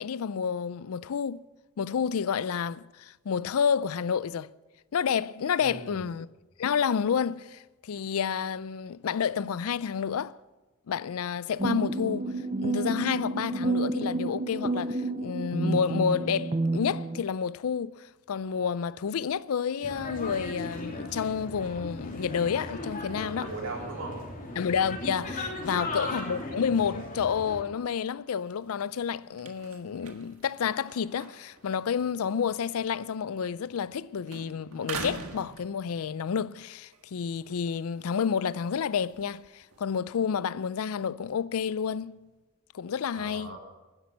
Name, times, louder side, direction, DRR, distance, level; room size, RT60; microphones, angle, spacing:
voice 1, 0.0-1.5 1.8-4.5 4.9-6.3 6.6-10.4 10.9-23.5 24.6-42.3 42.7-43.6, left 7 dB, 80° left, 0.4 m, -30 dB
voice 2, 5.6-6.1 23.4-24.2 25.6-26.0 43.1-43.6, right 3 dB, 65° right, 3.5 m, -39 dB
sound 1, 11.6-17.2, right 2 dB, 25° right, 0.6 m, -30 dB
sound 2, 19.8-27.6, left 2 dB, 40° left, 3.0 m, -37 dB
sound 3, 28.4-34.0 34.3-36.3 36.8-39.8, right 4 dB, 90° right, 1.6 m, -45 dB
12.0 x 10.5 x 8.4 m
head